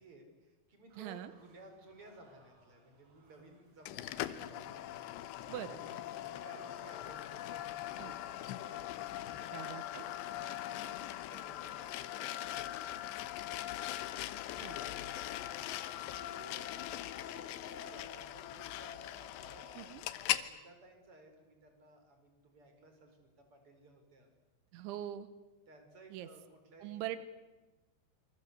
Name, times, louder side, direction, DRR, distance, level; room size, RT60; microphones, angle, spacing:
voice 1, 0.0-4.9 5.6-8.4 9.2-13.9 14.2-15.1 15.9-23.2 23.5-24.3 25.7-27.1, right 2 dB, 30° right, 5 dB, 5.5 m, -58 dB
sound 1, 0.9-15.2, right 2 dB, 60° right, 8.1 m, -68 dB
voice 2, 1.0-1.3 5.5-5.8 8.0-8.1 9.5-10.0 14.6-14.8 19.8-20.0 24.7-25.3 26.1-26.3 26.8-27.2, right 12 dB, 90° right, 13 dB, 3.5 m, -42 dB
sound 2, 3.9-20.5, left 13 dB, 75° left, 3.0 m, -41 dB
27.0 x 25.5 x 8.3 m, 1.1 s
omnidirectional pair, 5.2 m